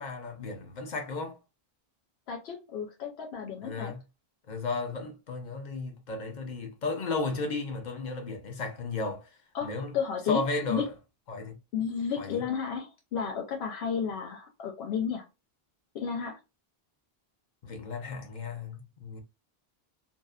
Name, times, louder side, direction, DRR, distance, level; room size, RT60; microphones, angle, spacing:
voice 1, 0.0-1.4 3.6-4.0 4.5-9.3 9.6-9.9 10.3-10.9 11.3-11.5 12.2-12.4 17.6-19.2, left 3 dB, 50° left, 0.7 m, -34 dB
voice 2, 2.3-3.9 9.5-10.4 10.7-10.9 11.7-15.2 15.9-16.4, left 7 dB, 85° left, 0.8 m, -32 dB
2.6 x 2.0 x 2.3 m
omnidirectional pair, 1.0 m